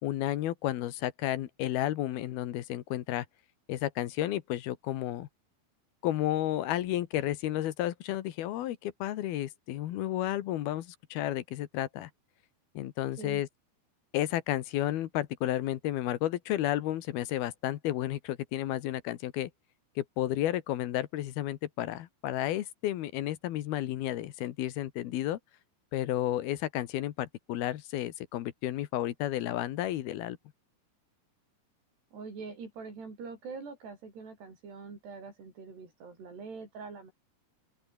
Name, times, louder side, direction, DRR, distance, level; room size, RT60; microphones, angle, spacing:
voice 1, 0.0-3.3 3.7-5.3 6.0-12.1 12.7-13.5 14.1-19.5 20.0-25.4 25.9-30.4, left 13 dB, 75° left, 3.1 m, -32 dB
voice 2, 32.1-37.1, right 4 dB, 85° right, 9.6 m, -44 dB
open air
omnidirectional pair, 4.6 m